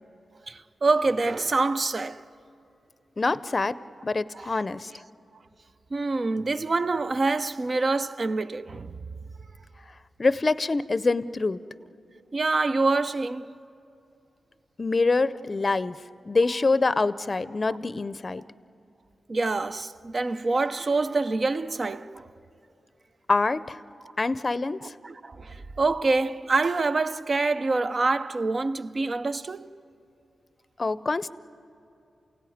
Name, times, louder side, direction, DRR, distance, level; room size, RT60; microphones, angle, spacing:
voice 1, 0.5-2.2 4.3-4.6 5.9-9.2 12.3-13.6 19.3-22.3 24.8-29.7, right 3 dB, 50° right, 0.6 m, -26 dB
voice 2, 3.2-3.7 4.0-4.9 10.2-11.6 14.8-16.0 16.3-18.4 23.3-23.8 24.2-24.9 30.8-31.3, left 3 dB, 40° left, 0.6 m, -25 dB
28.5 x 17.0 x 9.3 m
cardioid pair, 65°, 0 cm